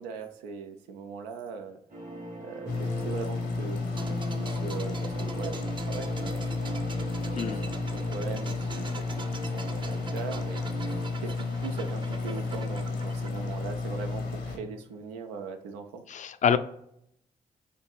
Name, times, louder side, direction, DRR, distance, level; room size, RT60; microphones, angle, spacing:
voice 1, 0.0-1.8 2.4-3.8 4.1-7.6 7.9-8.9 9.5-10.7 11.2-16.0, right 5 dB, 90° right, 6 dB, 0.4 m, -40 dB
sound 1, 1.9-11.1, right 1 dB, 50° right, 1.4 m, -39 dB
sound 2, 2.7-14.6, left 4 dB, 75° left, 0.8 m, -32 dB
sound 3, 3.9-14.6 14.8-15.0, right 4 dB, 30° right, 0.5 m, -44 dB
voice 2, 7.3-7.7 16.1-16.6, left 7 dB, 45° left, 12 dB, 0.4 m, -26 dB
4.4 x 2.7 x 2.4 m, 0.73 s
hypercardioid pair, 45°, 18 cm